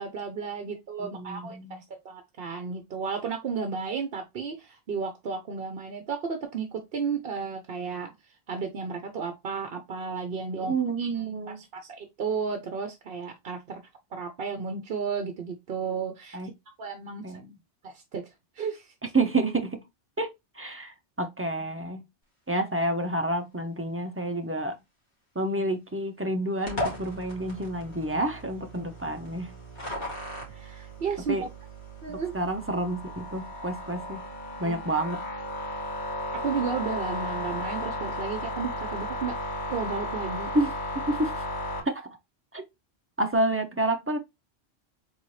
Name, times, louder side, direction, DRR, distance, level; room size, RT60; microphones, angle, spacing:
voice 1, 0.0-8.1 8.5-11.2 11.7-13.8 14.1-16.4 16.8-17.3 17.8-18.3 18.5-18.9 30.5-31.4 32.0-32.3 34.6-34.8 36.3-39.4 39.7-40.5, right 5 dB, 55° right, 0.8 m, -33 dB
voice 2, 1.0-1.8 10.6-11.6 16.3-16.5 17.2-17.4 19.0-19.8 20.2-22.0 22.5-24.8 25.3-29.5 31.3-31.5 32.1-34.2 34.6-35.2 40.5-41.4 41.8-42.1 42.5-42.6 43.2-44.2, right 2 dB, 15° right, 0.5 m, -29 dB
sound 1, 26.7-41.8, left 1 dB, 40° left, 2.5 m, -35 dB
4.1 x 3.9 x 3.2 m
omnidirectional pair, 1.2 m